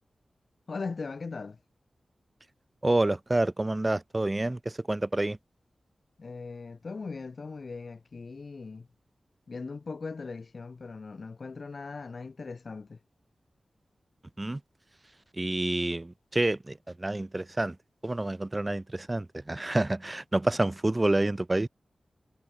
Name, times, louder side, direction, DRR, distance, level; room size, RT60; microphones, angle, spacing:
voice 1, 0.7-1.6 6.2-8.9 9.5-13.0, left 4 dB, 60° left, 3.4 m, -39 dB
voice 2, 2.8-5.4 14.4-14.6 15.4-17.7 18.0-21.7, right 2 dB, 25° right, 1.5 m, -28 dB
wide cardioid pair, 70°, 0 cm